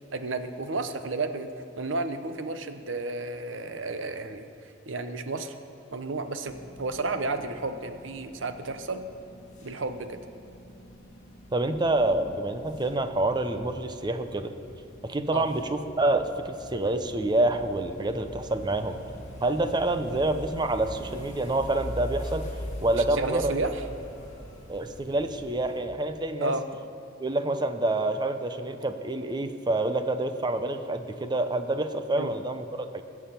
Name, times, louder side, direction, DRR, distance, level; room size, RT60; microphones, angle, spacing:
voice 1, 0.1-1.5 1.8-4.5 4.9-5.6 5.9-9.0 9.6-10.2 15.3-15.5 22.9-23.8 26.4-26.6 32.2-32.3, right 3 dB, 75° right, 8 dB, 0.8 m, -32 dB
sound 1, 6.5-25.8, equal, 40° left, 2.3 m, -43 dB
voice 2, 11.5-14.5 15.0-19.0 19.4-22.5 22.8-23.7 24.7-26.6 27.2-33.0, right 2 dB, 20° right, 8 dB, 0.7 m, -27 dB
20.5 x 7.3 x 5.8 m, 2.6 s
head